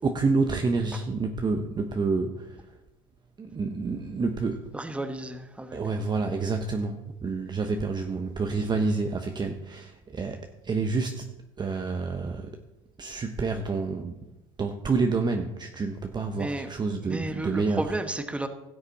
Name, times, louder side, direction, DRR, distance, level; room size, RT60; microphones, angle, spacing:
voice 1, 0.0-2.6 3.4-4.7 5.7-11.3 11.6-12.6 13.0-14.2 14.6-17.9, right 4 dB, 25° right, 5 dB, 1.0 m, -28 dB
voice 2, 4.7-5.8 16.3-16.7 17.0-18.5, right 1 dB, 5° right, 8 dB, 1.2 m, -33 dB
17.0 x 6.6 x 4.2 m, 1.0 s
hypercardioid pair, 80°, 17 cm